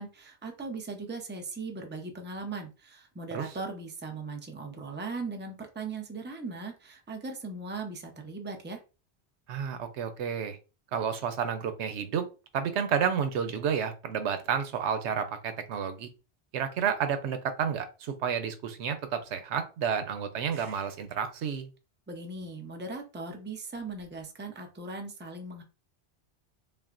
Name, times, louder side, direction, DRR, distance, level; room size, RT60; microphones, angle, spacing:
voice 1, 0.0-8.8 22.1-25.6, right 3 dB, 15° right, 3 dB, 0.5 m, -39 dB
voice 2, 9.5-10.6 10.9-12.2 12.5-16.1 16.5-21.7, right 7 dB, 85° right, 9 dB, 0.9 m, -30 dB
5.8 x 2.1 x 2.5 m, 0.32 s
omnidirectional pair, 1.1 m